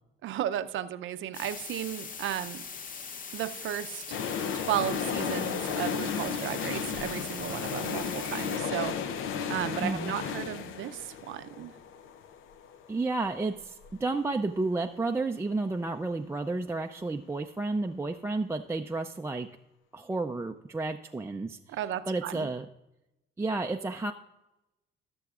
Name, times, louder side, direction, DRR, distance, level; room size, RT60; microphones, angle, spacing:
voice 1, 0.2-2.6 3.3-4.2 4.5-11.8 21.7-22.5, right 11 dB, 80° right, 11 dB, 0.6 m, -34 dB
sound 1, 1.3-8.6, left 5 dB, 45° left, 0.7 m, -41 dB
sound 2, 4.1-13.9 14.2-14.3, left 7 dB, 80° left, 0.7 m, -34 dB
voice 2, 9.8-10.1 12.9-19.5 19.9-21.8 22.1-22.7 23.4-24.1, right 3 dB, 15° right, 3 dB, 0.4 m, -31 dB
18.0 x 6.9 x 2.4 m, 0.94 s
cardioid pair, 90°, 20 cm